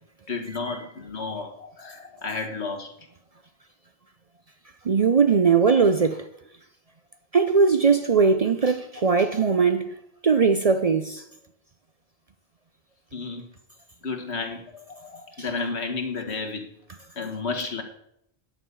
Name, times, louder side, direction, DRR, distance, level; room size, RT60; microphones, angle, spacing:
voice 1, 0.3-2.9 9.2-9.4 13.1-13.5 14.0-16.7 17.2-17.8, left 4 dB, 75° left, 1.9 m, -32 dB
voice 2, 4.8-6.3 7.3-9.9 10.2-11.2, right 5 dB, 45° right, 0.6 m, -20 dB
10.5 x 5.6 x 8.2 m
omnidirectional pair, 1.1 m